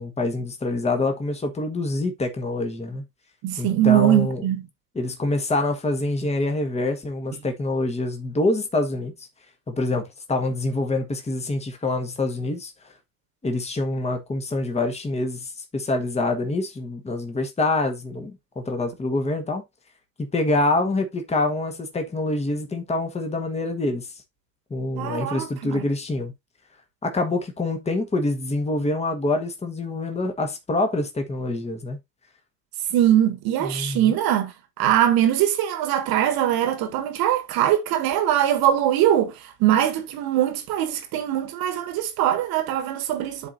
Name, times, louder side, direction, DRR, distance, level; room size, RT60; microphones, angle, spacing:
voice 1, 0.0-3.0 3.6-4.4 4.9-9.3 9.7-12.7 13.4-19.6 20.2-24.1 24.7-26.3 27.0-32.0 33.6-34.2, left 2 dB, 15° left, 1.4 m, -26 dB
voice 2, 3.4-4.7 25.0-25.8 32.9-43.5, right 11 dB, 50° right, 1.7 m, -22 dB
11.0 x 3.8 x 2.6 m
hypercardioid pair, 90°, 48 cm